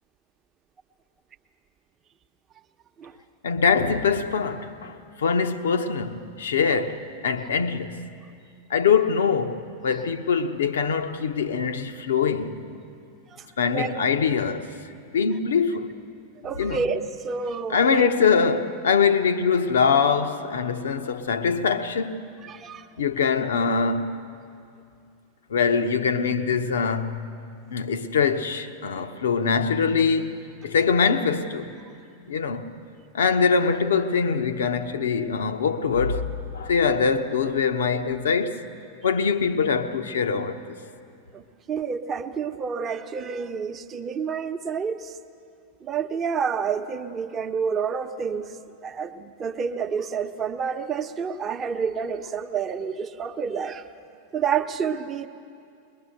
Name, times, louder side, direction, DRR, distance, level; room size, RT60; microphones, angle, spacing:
voice 1, 3.4-8.1 8.7-12.6 13.6-14.7 15.1-15.9 16.6-16.8 17.7-22.2 23.0-24.1 25.5-27.4 27.7-31.7 32.3-32.7 33.1-36.3 36.5-38.6 39.0-40.8, left 5 dB, 65° left, 0.9 m, -23 dB
voice 2, 16.4-18.1 22.4-22.9 41.3-45.2 45.8-48.6 48.8-53.9 54.3-55.3, right 6 dB, 25° right, 1.0 m, -29 dB
22.0 x 21.5 x 6.5 m
figure-of-eight pair, 90°, 0 cm